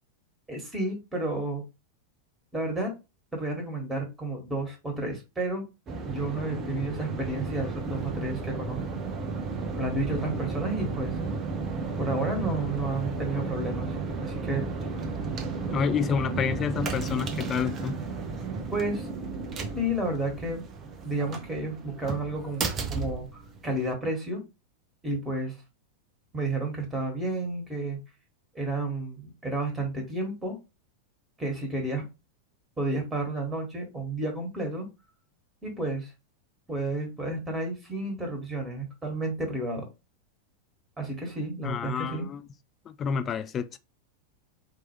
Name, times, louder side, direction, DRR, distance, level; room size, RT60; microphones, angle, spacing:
voice 1, 0.5-1.6 2.5-2.9 3.3-5.6 6.1-8.8 9.8-11.2 12.0-13.9 14.2-14.7 18.7-19.1 19.8-20.6 21.0-24.4 25.0-25.6 26.3-28.0 28.5-30.6 31.4-32.0 32.8-34.9 35.6-36.1 36.7-39.9 41.0-42.3, right 2 dB, 10° right, 1.8 m, -31 dB
sound 1, 5.9-23.9, right 4 dB, 30° right, 0.8 m, -33 dB
voice 2, 15.7-18.0 41.6-42.4 42.9-43.8, left 6 dB, 25° left, 0.4 m, -29 dB
4.6 x 3.0 x 3.2 m
figure-of-eight pair, 90°, 0 cm